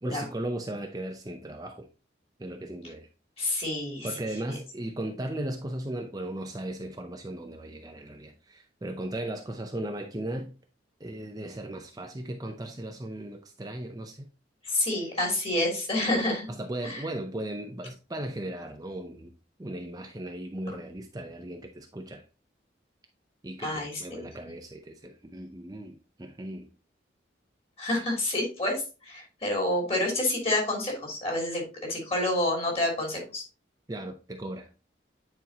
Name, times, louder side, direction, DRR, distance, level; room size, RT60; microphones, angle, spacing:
voice 1, 0.0-1.9 2.4-3.1 4.0-10.5 11.0-14.2 16.6-19.3 19.6-22.2 23.4-26.7 33.9-34.7, right 1 dB, 20° right, 0.5 m, -37 dB
voice 2, 3.4-4.1 14.6-16.5 16.8-17.0 20.7-20.8 23.6-24.3 27.8-33.4, left 1 dB, 30° left, 2.7 m, -28 dB
9.3 x 4.5 x 2.8 m
head